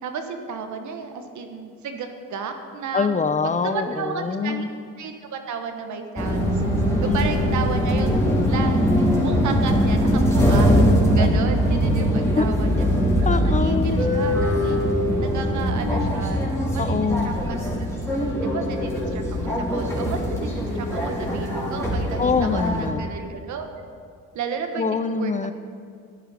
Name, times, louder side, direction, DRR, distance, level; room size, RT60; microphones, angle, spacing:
voice 1, 0.0-3.1 3.6-4.6 5.0-6.6 7.0-10.7 11.1-12.9 13.3-14.8 15.2-17.9 18.4-23.8 24.3-25.3, right 6 dB, 70° right, 6 dB, 1.2 m, -33 dB
voice 2, 2.9-4.7 6.9-7.5 10.1-10.2 11.2-11.3 12.3-12.5 13.2-14.0 16.8-17.4 22.2-23.0 24.8-25.5, left 5 dB, 25° left, 11 dB, 0.5 m, -25 dB
sound 1, 6.2-22.9, equal, 10° left, 3.3 m, -21 dB
13.0 x 10.0 x 4.2 m, 2.2 s
cardioid pair, 90°, 30 cm